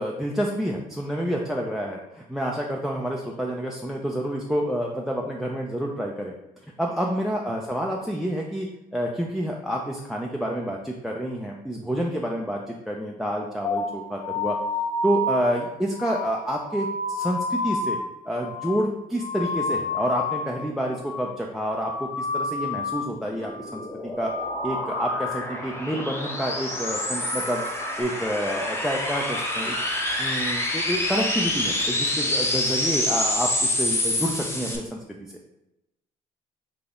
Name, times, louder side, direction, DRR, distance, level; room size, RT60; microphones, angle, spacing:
voice 1, 0.0-6.3 6.8-14.6 15.0-18.0 18.3-24.3 24.6-27.6 28.0-29.8 30.2-35.3, equal, ahead, 0 dB, 0.5 m, -28 dB
sound 1, 13.6-20.6 20.9-21.4 21.7-23.1 23.4-23.9 24.2-25.6 26.0-26.3 26.7-28.0, left 2 dB, 50° left, 0.8 m, -30 dB
sound 2, 23.2-34.8, left 1 dB, 15° left, 1.0 m, -27 dB
3.8 x 2.8 x 3.7 m, 0.91 s
hypercardioid pair, 60°, 17 cm